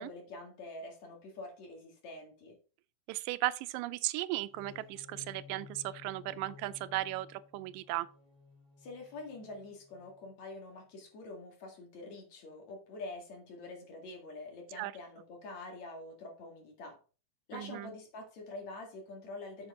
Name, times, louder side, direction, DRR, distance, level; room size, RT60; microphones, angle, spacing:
voice 1, 0.0-2.6 8.8-17.0 17.5-19.7, left 2 dB, 60° left, 3.2 m, -46 dB
voice 2, 3.1-8.1 14.8-14.9 17.5-17.9, right 17 dB, 90° right, 2.2 m, -36 dB
sound 1, 4.4-10.3, left 6 dB, 20° left, 2.9 m, -55 dB
8.8 x 7.4 x 3.8 m
omnidirectional pair, 3.8 m